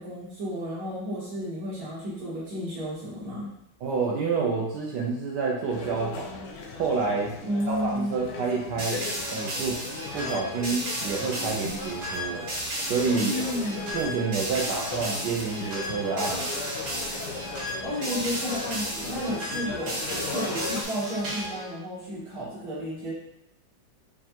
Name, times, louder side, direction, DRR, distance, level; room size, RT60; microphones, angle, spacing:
voice 1, 0.0-3.5 7.4-8.1 13.2-13.9 17.8-23.1, equal, 85° right, -9 dB, 2.6 m, -32 dB
voice 2, 3.8-6.4 6.8-7.3 7.7-9.0 9.3-9.8 10.1-12.5 12.9-13.3 13.9-16.5, right 4 dB, 70° right, -2 dB, 1.1 m, -28 dB
sound 1, 5.7-20.8, left 4 dB, 75° left, 1.0 m, -38 dB
sound 2, 8.8-21.7, equal, 50° right, 1.6 m, -33 dB
5.4 x 2.4 x 2.8 m, 0.76 s
omnidirectional pair, 2.3 m